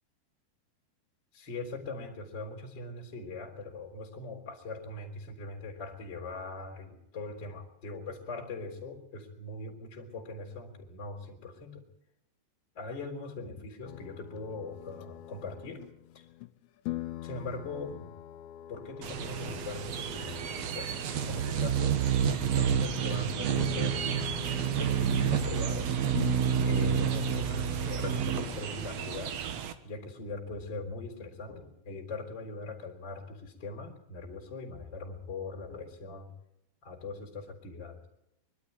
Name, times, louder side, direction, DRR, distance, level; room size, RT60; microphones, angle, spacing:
voice 1, 1.3-11.8 12.7-15.8 16.1-16.2 17.2-18.1 18.7-20.9 21.2-24.4 24.8-26.0 26.6-29.4 29.8-36.3 36.8-38.1, left 3 dB, 25° left, 0 dB, 3.8 m, -41 dB
sound 1, 13.8-16.5 16.9-22.7 23.0-23.2 23.5-25.7 26.1-29.1, left 13 dB, 90° left, 3.2 m, -43 dB
sound 2, 19.0-29.7, right 8 dB, 75° right, 1.5 m, -29 dB
24.0 x 12.5 x 9.3 m, 0.87 s
omnidirectional pair, 5.1 m